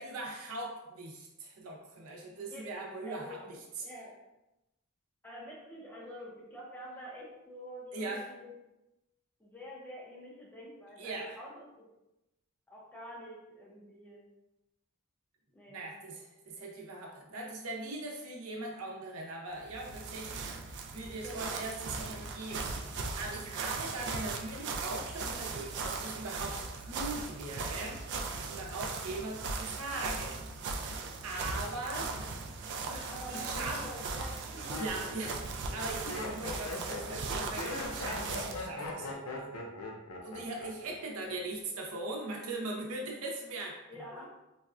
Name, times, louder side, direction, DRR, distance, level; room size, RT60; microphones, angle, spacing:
voice 1, 0.0-3.4 7.9-8.3 11.0-11.4 15.7-28.0 28.4-30.9 31.2-32.1 32.8-33.8 34.8-35.3 35.7-39.5 40.2-43.8, right 2 dB, 85° right, 0 dB, 0.6 m, -40 dB
voice 2, 3.1-3.5 3.8-4.2 5.2-8.5 9.4-11.8 12.7-14.3 15.5-15.9 21.2-21.7 32.4-32.5 33.1-34.8 43.9-44.3, equal, 10° left, -5 dB, 0.7 m, -47 dB
sound 1, 19.6-38.7, right 4 dB, 55° right, 0.3 m, -38 dB
Laughter, 34.4-40.9 41.2-41.7, left 2 dB, 80° left, 0.6 m, -40 dB
4.0 x 2.2 x 2.4 m, 0.95 s
head